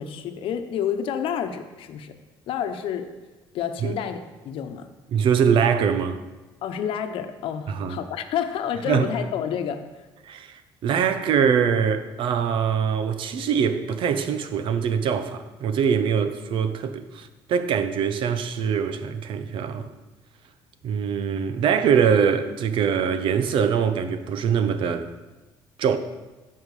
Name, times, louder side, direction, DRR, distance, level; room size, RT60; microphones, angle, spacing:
voice 1, 0.0-2.2 2.5-3.1 3.5-4.9 6.6-9.8, left 8 dB, 70° left, 1.0 m, -29 dB
voice 2, 5.1-6.2 7.7-8.0 8.9-9.1 10.3-19.9 20.8-25.1 25.8-26.0, right 7 dB, 65° right, 0.9 m, -23 dB
14.5 x 5.7 x 4.9 m
cardioid pair, 110°, 9 cm